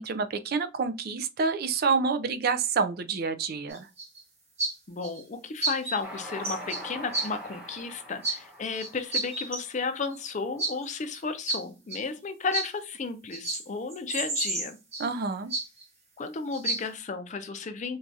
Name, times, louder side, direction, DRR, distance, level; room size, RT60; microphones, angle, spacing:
voice 1, 0.0-3.9 15.0-15.5, right 5 dB, 50° right, 0.3 m, -28 dB
sound 1, 3.7-4.2 4.6-4.7 5.0-5.2 5.6-6.0 6.3-6.8 7.1-7.3 8.2-8.4 8.7-9.6 10.1-10.2 10.6-10.7 11.1-11.2 11.5-11.6 11.9-12.0 12.5-12.7 13.3-13.6 13.9-15.1 15.5-15.8 16.5-16.8, right 2 dB, 35° right, 1.1 m, -30 dB
voice 2, 4.9-14.8 16.2-18.0, left 4 dB, 35° left, 0.4 m, -33 dB
Train, 6.0-10.4, equal, 5° right, 0.9 m, -43 dB
4.4 x 2.4 x 2.6 m
head